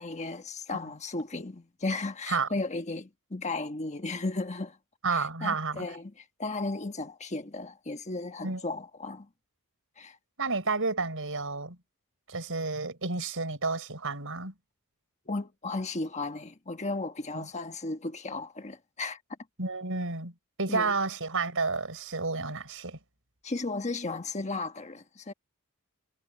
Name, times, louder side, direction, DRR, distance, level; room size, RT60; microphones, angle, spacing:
voice 1, 0.0-4.8 5.1-9.3 10.0-10.2 15.3-19.2 20.7-20.9 23.4-25.3, left 3 dB, 30° left, 1.4 m, -35 dB
voice 2, 5.0-5.8 8.4-8.6 10.4-11.8 12.3-14.5 17.3-17.5 19.6-20.3 20.6-23.0, right 4 dB, 65° right, 6.2 m, -31 dB
head